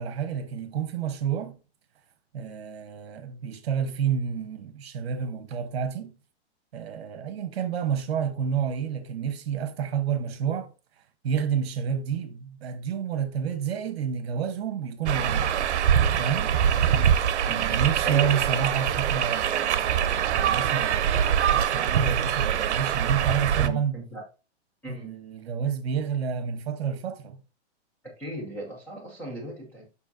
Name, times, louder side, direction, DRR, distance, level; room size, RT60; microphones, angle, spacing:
voice 1, 0.0-1.6 2.3-6.1 6.7-10.7 11.2-15.5 16.1-16.6 17.5-21.1 21.5-23.9 24.9-27.4, right 7 dB, 65° right, 1.1 m, -29 dB
sound 1, 15.1-23.7, right 9 dB, 80° right, 0.7 m, -24 dB
voice 2, 17.5-18.4 23.6-24.2 24.8-25.1 28.2-29.9, right 1 dB, 5° left, 0.5 m, -38 dB
7.0 x 5.6 x 2.6 m
hypercardioid pair, 165°, 34 cm